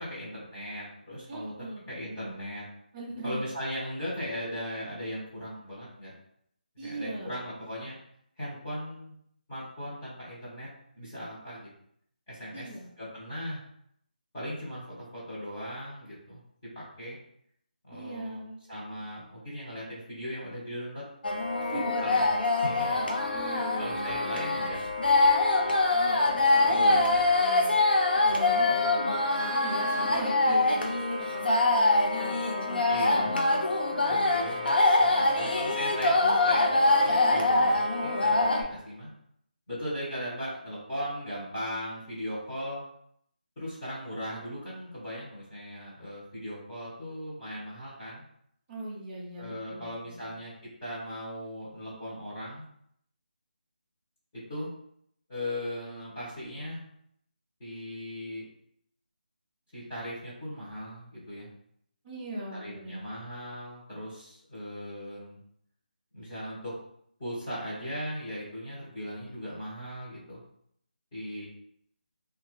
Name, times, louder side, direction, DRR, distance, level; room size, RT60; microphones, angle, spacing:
voice 1, 0.0-1.5 1.9-2.6 3.2-6.1 6.8-8.0 8.4-9.1 9.5-10.7 10.9-11.7 12.3-12.7 13.0-13.6 14.3-14.8 15.1-16.4 16.7-17.2 17.8-18.4 18.7-21.0 21.7-22.3 22.6-23.0 23.8-24.8 26.6-27.3 32.9-33.3 34.1-39.1 39.7-42.8 43.6-48.2 49.4-50.5 50.8-52.7 54.3-54.7 55.3-56.8 57.6-58.4 59.7-61.5 62.6-65.4 66.1-66.7 67.2-70.4 71.1-71.5, equal, 20° left, -10 dB, 0.8 m, -38 dB
voice 2, 1.3-1.8 2.9-3.4 6.8-7.4 12.5-12.9 17.9-18.6 21.6-22.0 22.8-24.7 25.9-27.8 28.1-31.6 32.1-33.6 33.8-34.4 35.2-35.8 48.7-50.3 62.0-63.0, right 1 dB, 10° right, -6 dB, 0.3 m, -39 dB
sound 1, 21.2-38.6, left 2 dB, 90° left, 0.6 m, -24 dB
2.8 x 2.3 x 3.0 m, 0.70 s
figure-of-eight pair, 175°, 5 cm